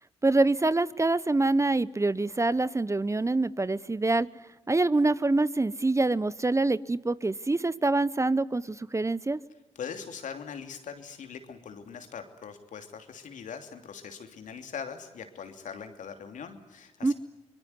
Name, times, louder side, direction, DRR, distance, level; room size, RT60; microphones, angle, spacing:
voice 1, 0.2-4.3 4.7-9.4 17.0-17.1, right 2 dB, 20° right, 19 dB, 0.9 m, -25 dB
voice 2, 9.7-17.1, left 7 dB, 70° left, 7 dB, 3.0 m, -41 dB
24.5 x 21.0 x 9.6 m, 1.0 s
supercardioid pair, 45°, 13 cm